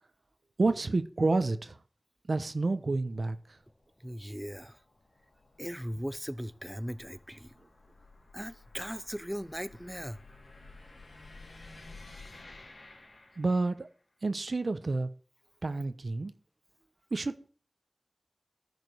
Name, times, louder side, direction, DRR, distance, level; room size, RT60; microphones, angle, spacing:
voice 1, 0.6-1.8 2.3-3.6 13.4-13.9 14.2-15.1 15.6-16.3 17.1-17.5, right 3 dB, 75° right, 0.9 m, -29 dB
sound 1, 2.5-13.9, left 3 dB, 75° left, 2.6 m, -54 dB
voice 2, 4.0-4.8 5.6-7.5 8.3-10.2, equal, 5° right, 0.5 m, -38 dB
13.5 x 5.1 x 6.3 m
wide cardioid pair, 65°, 0 cm